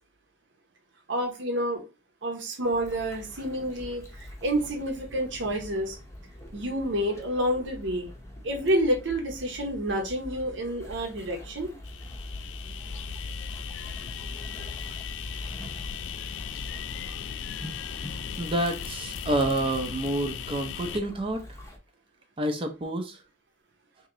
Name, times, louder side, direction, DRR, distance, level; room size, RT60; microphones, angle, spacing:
voice 1, 1.1-1.8 2.2-6.0 6.5-8.1 8.4-11.7, right 1 dB, 75° right, 0.9 m, -29 dB
sound 1, 2.6-21.8, left 1 dB, 15° left, 0.7 m, -43 dB
sound 2, 11.8-21.0, left 8 dB, 80° left, 0.3 m, -38 dB
voice 2, 18.4-21.4 22.4-23.2, right 1 dB, 30° right, 0.6 m, -28 dB
3.0 x 2.8 x 3.7 m
head